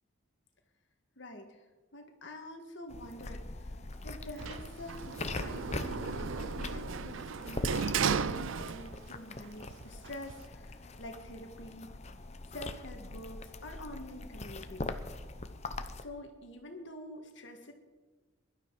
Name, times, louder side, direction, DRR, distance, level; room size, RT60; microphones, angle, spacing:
voice 1, 1.2-1.6 1.9-11.9 12.5-14.9 16.0-17.7, left 1 dB, 60° left, 4 dB, 1.8 m, -47 dB
sound 1, 2.9-16.0, left 2 dB, 30° left, 0.8 m, -42 dB
Sliding door, 4.4-9.2 9.5-10.5, right 6 dB, 65° right, 0.5 m, -35 dB
22.0 x 12.0 x 4.9 m, 1.3 s
head